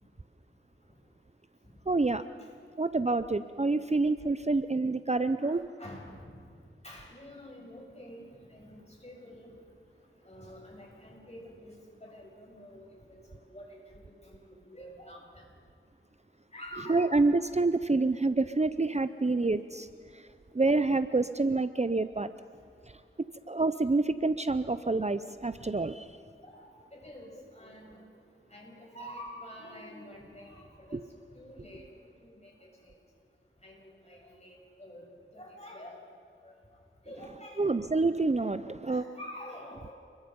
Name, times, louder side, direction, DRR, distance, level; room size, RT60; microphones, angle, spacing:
voice 1, 1.9-2.2 2.8-5.6 16.9-19.9 20.1-20.3 20.5-22.3 23.5-26.2 30.9-31.0 37.6-39.0, right 3 dB, 30° right, 12 dB, 0.6 m, -27 dB
voice 2, 5.4-6.2 6.8-9.6 10.2-13.8 14.2-15.4 16.5-17.1 26.4-28.1 28.5-31.1 31.3-31.8 32.2-32.5 32.8-33.0 33.6-35.0 35.3-36.0 36.4-36.5 37.1-37.7 38.9-39.9, equal, 30° left, -2 dB, 7.5 m, -48 dB
30.0 x 22.0 x 5.3 m, 2.4 s
wide cardioid pair, 50°, 21 cm